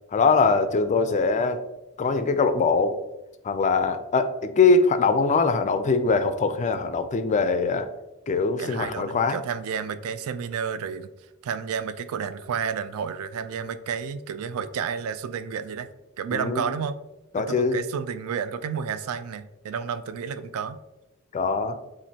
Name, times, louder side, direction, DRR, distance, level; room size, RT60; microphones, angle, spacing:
voice 1, 0.1-1.6 2.0-3.0 3.4-7.9 8.3-9.4 16.3-16.7 17.3-17.8 21.3-21.8, left 4 dB, 30° left, 9 dB, 0.3 m, -22 dB
voice 2, 8.6-11.1 11.4-15.9 16.2-17.0 17.3-20.8, right 6 dB, 65° right, 12 dB, 0.3 m, -31 dB
7.3 x 2.5 x 2.8 m, 0.99 s
head